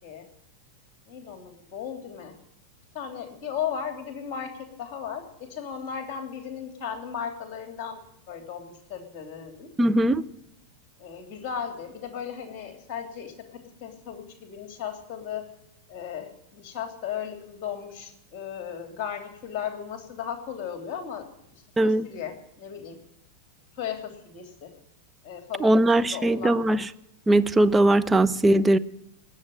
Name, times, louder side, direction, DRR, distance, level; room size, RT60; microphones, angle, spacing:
voice 1, 1.1-2.4 2.9-8.0 8.3-9.7 11.0-15.5 15.9-21.3 21.8-23.0 23.8-24.7 25.2-26.6, left 8 dB, 40° left, 3.0 m, -36 dB
voice 2, 9.8-10.2 21.8-22.1 25.6-26.9 27.3-28.8, right 1 dB, 10° right, 0.6 m, -20 dB
19.5 x 7.4 x 9.0 m
figure-of-eight pair, 90°, 0 cm